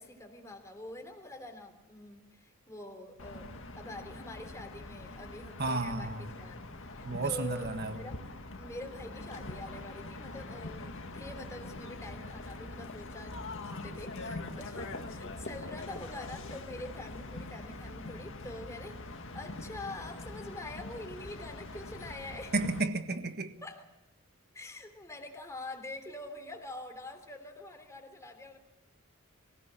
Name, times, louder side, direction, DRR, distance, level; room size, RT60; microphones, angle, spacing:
voice 1, 0.0-6.6 6.8-8.2 8.6-22.5 23.6-24.0 24.5-28.6, left 2 dB, 15° left, 3.2 m, -45 dB
sound 1, 3.2-22.8, left 2 dB, 65° left, 1.9 m, -43 dB
voice 2, 5.6-6.2 7.0-7.9 22.5-23.5, right 3 dB, 50° right, 1.6 m, -32 dB
25.0 x 16.5 x 7.6 m
head